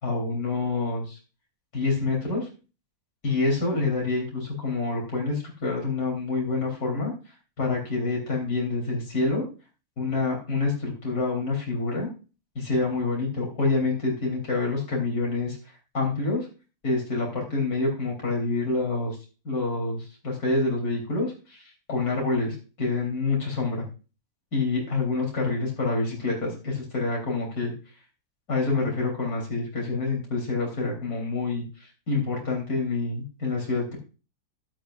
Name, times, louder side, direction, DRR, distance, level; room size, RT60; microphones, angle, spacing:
voice 1, 0.0-1.2 1.7-2.5 3.2-7.1 7.6-9.4 10.0-12.1 12.6-15.6 15.9-16.5 16.8-19.2 19.4-23.8 24.5-27.7 28.5-34.0, left 3 dB, 75° left, -1 dB, 4.0 m, -27 dB
13.5 x 11.5 x 2.5 m, 0.33 s
omnidirectional pair, 1.6 m